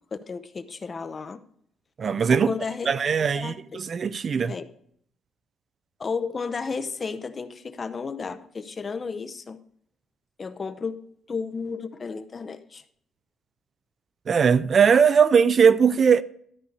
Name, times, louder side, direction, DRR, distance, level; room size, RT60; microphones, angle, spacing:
voice 1, 0.1-1.4 2.3-2.9 3.3-3.8 4.5-4.7 6.0-9.6 10.4-11.0 11.3-12.8, left 5 dB, 30° left, 0.7 m, -33 dB
voice 2, 2.0-2.5 2.9-4.6 14.3-16.2, right 6 dB, 40° right, 0.4 m, -19 dB
13.0 x 5.4 x 6.6 m
cardioid pair, 135°, 0 cm